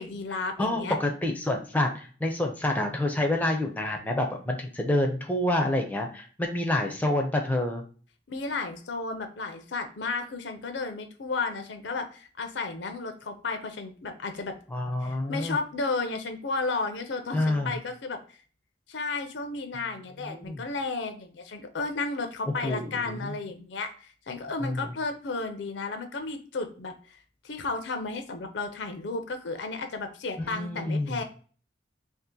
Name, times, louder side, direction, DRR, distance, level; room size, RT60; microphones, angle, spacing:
voice 1, 0.0-0.9 8.3-14.6 15.0-18.4 18.9-26.9 27.4-31.2, left 3 dB, 85° left, 7 dB, 0.5 m, -33 dB
voice 2, 0.6-7.8 14.7-15.6 17.3-17.8 20.3-20.6 22.6-23.3 24.6-24.9 30.4-31.2, left 1 dB, 10° left, 2 dB, 0.4 m, -28 dB
2.7 x 2.5 x 3.6 m, 0.40 s
head